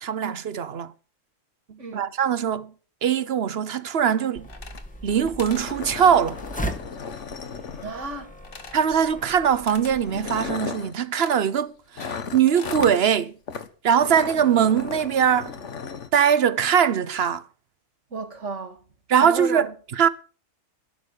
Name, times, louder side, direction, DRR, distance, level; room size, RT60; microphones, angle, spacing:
voice 1, 0.0-0.9 1.7-2.7 3.0-4.5 5.0-6.4 8.7-13.3 13.8-15.5 16.1-17.4 19.1-20.1, right 8 dB, 55° right, 1.1 m, -21 dB
voice 2, 1.8-2.1 7.8-8.3 18.1-18.8 19.2-19.7, right 3 dB, 75° right, 2.3 m, -33 dB
sound 1, 4.3-10.6, equal, 5° left, 1.4 m, -38 dB
sound 2, 4.4-5.1 5.4-5.7 8.4-8.9 9.7-10.0 11.1-11.4 12.0-12.9, left 4 dB, 50° left, 1.5 m, -42 dB
sound 3, 4.7-4.8 5.1-5.2 5.5-8.2 9.2-9.4 10.0-10.9 12.0-13.0 13.5-13.7 14.0-16.1, left 6 dB, 70° left, 1.5 m, -35 dB
12.0 x 10.0 x 6.5 m
omnidirectional pair, 1.3 m